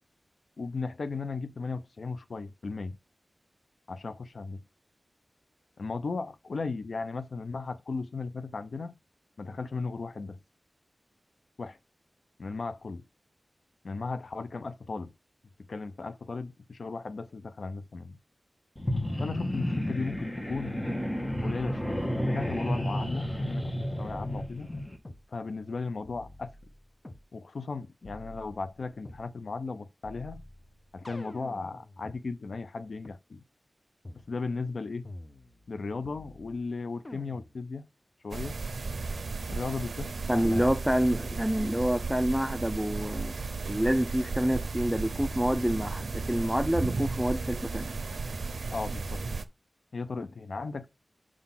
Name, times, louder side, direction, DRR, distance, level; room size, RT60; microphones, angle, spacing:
voice 1, 0.6-3.0 3.9-4.6 5.8-9.0 9.4-10.4 11.6-11.8 12.4-13.1 13.8-15.1 15.6-18.2 19.2-20.8 21.4-24.7 25.3-26.5 27.3-30.4 30.9-33.4 34.3-35.1 35.7-37.9 38.2-38.6 39.4-40.7 48.7-49.2 49.9-50.9, left 4 dB, 80° left, 0.5 m, -36 dB
sound 1, 18.8-25.0, equal, 20° left, 1.2 m, -31 dB
sound 2, 22.0-22.2 23.0-23.7 24.0-25.2 26.0-27.3 28.0-29.3 30.0-32.2 33.0-33.1 34.0-34.3 35.0-35.7 36.0-36.7 37.0-37.7, left 1 dB, 35° left, 0.9 m, -47 dB
sound 3, 38.3-49.5, right 3 dB, 80° right, 0.5 m, -34 dB
voice 2, 40.3-43.4 43.7-47.9, equal, 5° right, 0.6 m, -27 dB
4.8 x 3.8 x 5.7 m
cardioid pair, 45°, 0 cm